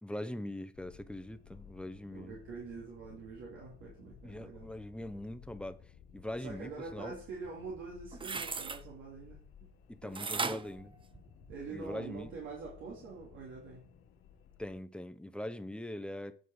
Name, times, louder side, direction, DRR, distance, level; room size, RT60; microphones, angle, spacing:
voice 1, 0.0-2.3 4.2-7.2 9.9-10.9 11.7-12.3 14.6-16.4, left 1 dB, 5° left, 0.9 m, -42 dB
sound 1, 0.7-14.8, left 7 dB, 90° left, 1.2 m, -57 dB
voice 2, 2.1-4.7 6.4-9.7 10.0-10.1 11.5-13.9, right 4 dB, 85° right, 2.7 m, -45 dB
sound 2, 8.1-8.8 10.2-11.7 12.2-12.3, right 4 dB, 25° right, 0.7 m, -37 dB
9.4 x 4.8 x 6.3 m
cardioid pair, 90°, 20 cm